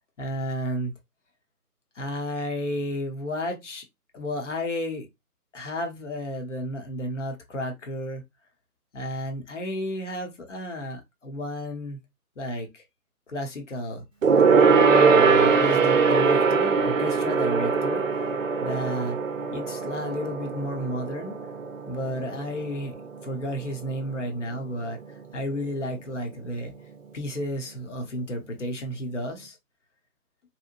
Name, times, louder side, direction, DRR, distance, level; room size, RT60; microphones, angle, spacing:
voice 1, 0.2-0.9 1.9-3.8 4.1-5.1 5.5-8.2 8.9-12.0 12.4-12.8 13.3-14.0 14.7-18.2 18.6-19.2 19.5-21.4 21.9-23.0 23.2-25.0 25.3-26.7 27.1-29.6, equal, 50° left, 0.8 m, -32 dB
Gong, 14.2-24.0 24.3-24.6 24.9-25.0, right 5 dB, 60° right, 0.5 m, -22 dB
2.8 x 2.1 x 2.5 m
figure-of-eight pair, 150°, 46 cm